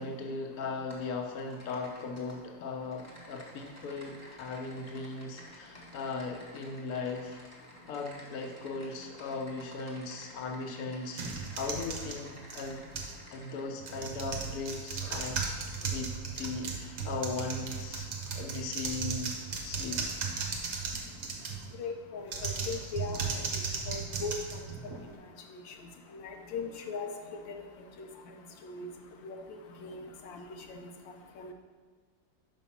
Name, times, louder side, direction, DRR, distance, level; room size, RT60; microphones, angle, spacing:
voice 1, 0.0-7.4 7.9-12.9 13.3-15.4 15.8-19.3 19.6-20.0, left 3 dB, 60° left, 2 dB, 1.2 m, -38 dB
Typing, 0.9-1.1 1.4-2.4 2.8-13.6, equal, 10° left, 1.1 m, -53 dB
dh keyboard collection, 11.1-13.2 13.8-21.7 22.2-25.2, right 5 dB, 50° right, 0.9 m, -36 dB
voice 2, 21.8-23.2 23.9-24.3 26.1-27.1 28.0-28.1 28.7-28.9 29.2-29.4 29.8-30.4 31.4-31.5, left 5 dB, 85° left, 3 dB, 1.5 m, -38 dB
5.6 x 5.3 x 5.7 m, 1.6 s
omnidirectional pair, 2.0 m